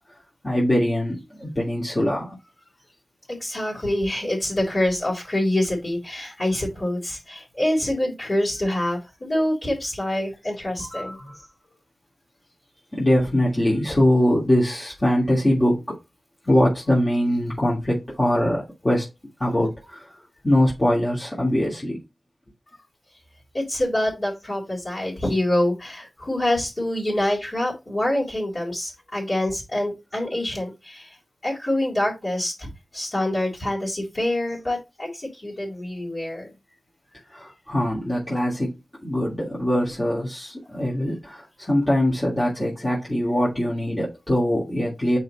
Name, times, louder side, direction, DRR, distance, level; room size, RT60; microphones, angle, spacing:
voice 1, 0.4-2.3 10.8-11.4 12.9-15.8 16.5-19.1 19.4-20.1 20.4-22.0 37.3-38.8 39.0-45.2, left 1 dB, 25° left, 2.9 m, -22 dB
voice 2, 3.3-11.2 23.5-31.2 31.4-36.5, left 1 dB, 45° left, 4.0 m, -26 dB
6.5 x 5.1 x 4.3 m
wide cardioid pair, 65°, 0 cm